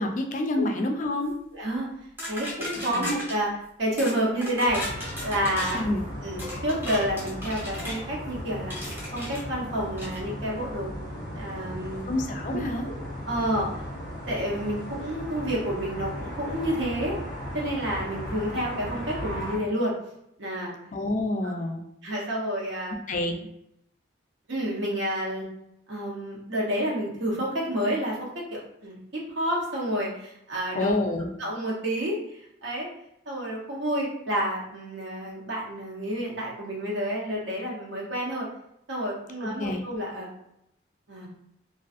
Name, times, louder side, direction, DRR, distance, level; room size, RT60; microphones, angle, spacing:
voice 1, 0.0-1.3 2.9-3.1 5.7-6.0 12.1-12.9 20.9-21.8 23.1-23.4 30.7-31.3 39.4-39.8, left 1 dB, 40° left, 3 dB, 0.3 m, -28 dB
voice 2, 1.5-1.9 2.3-3.5 3.8-5.8 6.2-10.9 11.3-12.0 12.5-12.6 12.8-12.9 13.3-13.7 14.3-17.2 17.5-19.9 20.4-20.7 22.0-23.0 24.5-25.5 25.9-30.9 31.4-32.2 32.6-32.9 33.3-38.5 38.9-40.3 41.1-41.3, equal, 70° right, -4 dB, 0.8 m, -29 dB
sound 1, 2.2-3.4 4.0-4.2 4.4-5.8 6.4-8.0 8.7-9.4 10.0-10.2, left 1 dB, 10° right, 0.7 m, -36 dB
sound 2, 4.7-19.6, equal, 90° right, 1.3 m, -37 dB
2.4 x 2.3 x 2.4 m, 0.79 s
head